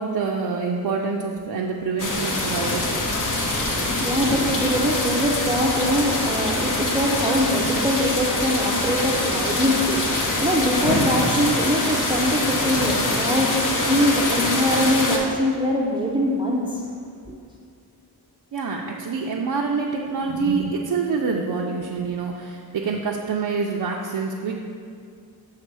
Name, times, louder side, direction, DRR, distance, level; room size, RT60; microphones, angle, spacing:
voice 1, 0.0-3.1 18.5-24.6, right 4 dB, 65° right, -1 dB, 0.6 m, -26 dB
sound 1, 2.0-15.2, left 2 dB, 50° left, 1.0 m, -24 dB
voice 2, 3.8-16.9 17.3-17.4, equal, 10° right, -2 dB, 0.6 m, -23 dB
6.6 x 3.5 x 6.1 m, 2.3 s
wide cardioid pair, 105°, 40 cm